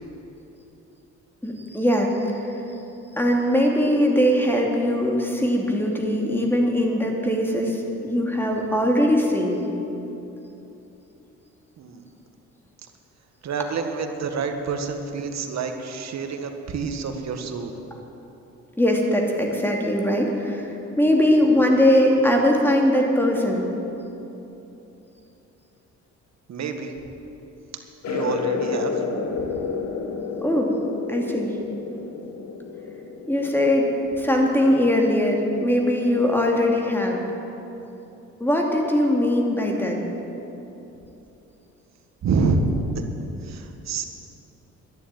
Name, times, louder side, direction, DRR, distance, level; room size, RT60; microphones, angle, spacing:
voice 1, 1.4-2.6 3.1-9.6 18.8-23.7 30.4-30.7 31.1-31.6 33.3-37.2 38.4-40.0, left 1 dB, 5° left, 0 dB, 2.5 m, -21 dB
voice 2, 13.4-17.8 26.5-26.9 28.1-29.0 42.2-42.7 43.4-44.1, right 4 dB, 60° right, 5 dB, 1.6 m, -27 dB
sound 1, 28.0-34.2, left 5 dB, 65° left, 1.3 m, -30 dB
11.5 x 10.5 x 9.1 m, 3.0 s
cardioid pair, 90°, 30 cm